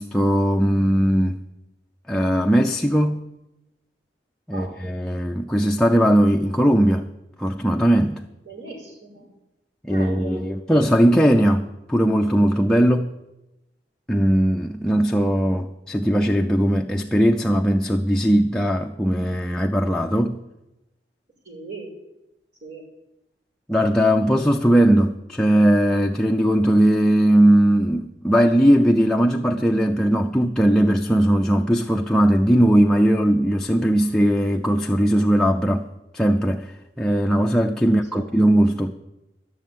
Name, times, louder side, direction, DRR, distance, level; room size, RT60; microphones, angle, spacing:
voice 1, 0.0-1.4 2.1-3.3 4.5-7.1 7.4-8.2 9.8-13.1 14.1-20.4 23.7-35.9 36.1-36.7 37.0-38.9, equal, 5° left, 0.5 m, -19 dB
voice 2, 8.5-9.3 9.9-10.4 21.5-21.9 22.6-22.8 38.1-38.2, right 3 dB, 65° right, 5.6 m, -38 dB
12.0 x 6.9 x 9.2 m
head